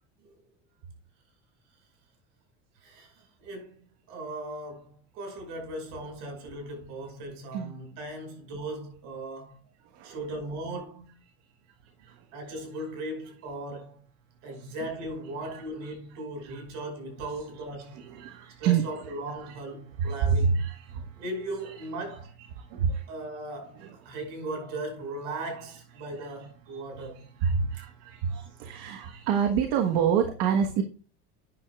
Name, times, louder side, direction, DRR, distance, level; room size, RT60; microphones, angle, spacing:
voice 1, 2.8-3.1 3.4-3.8 4.1-9.6 10.0-11.1 12.3-14.0 14.4-18.0 18.6-20.6 21.2-22.3 23.1-23.8 24.1-27.3, right 1 dB, 65° right, 5.7 m, -38 dB
voice 2, 15.4-15.9 16.4-16.6 17.2-17.3 17.5-19.1 19.4-19.6 20.0-21.1 21.6-21.7 22.5-23.1 23.8-24.2 26.0-26.3 26.7-30.8, right 7 dB, 80° right, 1.4 m, -29 dB
12.0 x 9.5 x 2.4 m
supercardioid pair, 125°, 31 cm